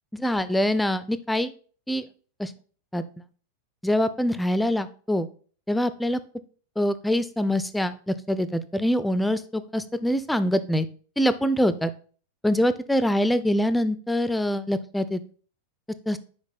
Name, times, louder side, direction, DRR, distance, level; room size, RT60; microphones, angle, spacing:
voice 1, 0.1-1.5 1.9-2.1 2.4-2.5 2.9-3.0 3.8-5.3 5.7-6.2 6.8-10.9 11.2-11.9 12.4-15.2 16.1-16.2, equal, 5° left, 13 dB, 0.5 m, -24 dB
6.1 x 4.9 x 4.1 m, 0.42 s
figure-of-eight pair, 90°, 0 cm